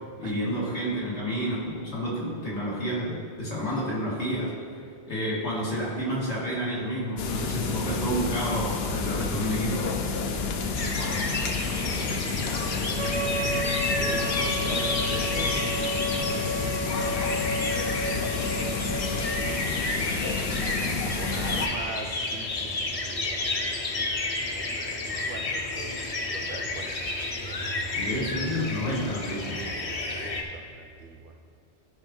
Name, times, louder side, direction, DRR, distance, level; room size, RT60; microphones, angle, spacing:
voice 1, 0.2-4.5 5.1-9.8 27.9-29.6, equal, 85° left, -7 dB, 2.4 m, -29 dB
sound 1, 7.2-21.7, left 4 dB, 70° left, 0.9 m, -30 dB
sound 2, 10.7-30.4, left 2 dB, 35° left, 0.7 m, -31 dB
voice 2, 11.7-13.5 13.9-17.1 17.7-20.2 20.9-23.6 24.0-24.2 24.5-26.0 26.3-27.0 27.4-28.1 30.1-31.4, right 4 dB, 60° right, 5 dB, 0.8 m, -42 dB
Wind instrument woodwind instrument, 13.0-19.5, equal, 85° right, 1.1 m, -32 dB
12.5 x 5.0 x 3.7 m, 2.3 s
omnidirectional pair, 1.1 m